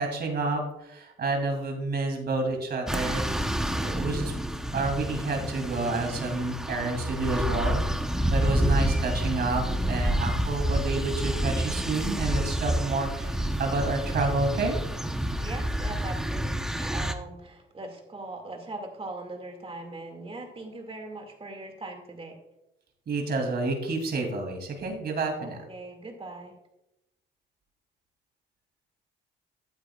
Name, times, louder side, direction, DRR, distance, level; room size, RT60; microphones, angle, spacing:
voice 1, 0.0-3.3 3.8-4.3 4.7-7.8 8.3-14.8 23.1-25.6, right 3 dB, 55° right, 3 dB, 2.9 m, -29 dB
sound 1, 2.9-17.1, right 1 dB, 5° right, 0.9 m, -28 dB
voice 2, 15.4-22.4 25.4-26.6, right 2 dB, 30° right, 4 dB, 2.3 m, -40 dB
12.5 x 8.7 x 2.4 m, 0.88 s
cardioid pair, 90°, 20 cm